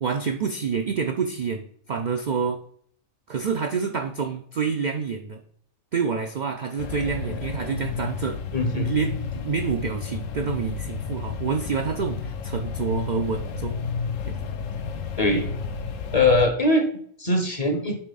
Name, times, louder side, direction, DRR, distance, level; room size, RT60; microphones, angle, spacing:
voice 1, 0.0-2.6 3.3-5.4 5.9-8.4 8.7-13.8 14.2-14.4, right 6 dB, 60° right, 5 dB, 0.4 m, -28 dB
sound 1, 6.8-16.5, left 5 dB, 80° left, 1.0 m, -31 dB
voice 2, 8.5-8.9 15.2-15.4 16.1-16.8 17.2-18.0, left 2 dB, 35° left, 5 dB, 0.7 m, -21 dB
8.7 x 3.5 x 4.0 m, 0.62 s
omnidirectional pair, 1.4 m